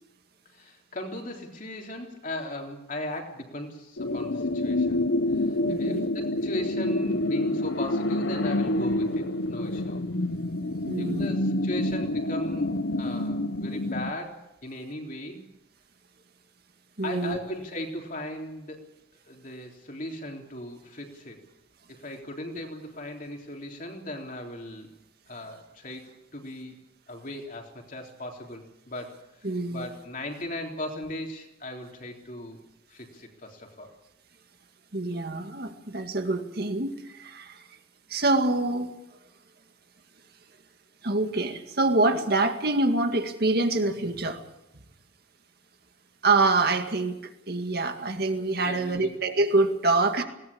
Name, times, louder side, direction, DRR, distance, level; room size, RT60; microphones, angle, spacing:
voice 1, 0.5-10.0 11.0-12.7 13.0-15.5 17.0-18.8 19.3-21.4 21.9-24.9 25.3-26.8 27.1-29.2 29.7-32.6 32.9-33.9 48.6-49.2, left 1 dB, 40° left, 2 dB, 3.6 m, -38 dB
sound 1, 4.0-14.1, left 1 dB, 65° left, 1.0 m, -27 dB
voice 2, 5.7-6.1 10.8-11.3 17.0-17.4 29.4-29.9 34.9-37.6 38.1-38.9 41.0-44.4 46.2-50.2, right 2 dB, 50° right, 6 dB, 2.0 m, -25 dB
21.0 x 18.5 x 8.6 m, 0.85 s
head